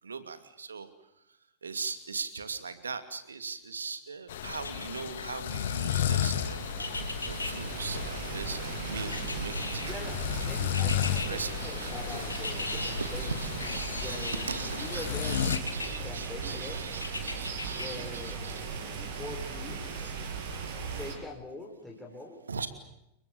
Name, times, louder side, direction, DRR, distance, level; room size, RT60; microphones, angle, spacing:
voice 1, 0.0-0.9 1.6-10.2 10.4-12.2 12.5-18.6 20.0-20.1 22.5-22.7, right 5 dB, 75° right, 10 dB, 2.6 m, -40 dB
sound 1, 4.3-15.6, left 10 dB, 60° left, 1.7 m, -34 dB
sound 2, 4.5-5.3 6.8-7.5 9.1-10.0 10.7-11.3 12.3-12.9 13.6-14.6 15.5-15.9 17.0-17.9 18.3-18.4, left 3 dB, 80° left, 3.6 m, -37 dB
sound 3, 5.1-21.1, right 5 dB, 55° right, 7.5 m, -38 dB
voice 2, 9.8-15.4 16.0-16.8 17.8-18.4 18.9-19.8 21.0-22.4, left 2 dB, 5° left, -1 dB, 5.5 m, -43 dB
30.0 x 23.0 x 7.0 m, 0.86 s
figure-of-eight pair, 90°, 0 cm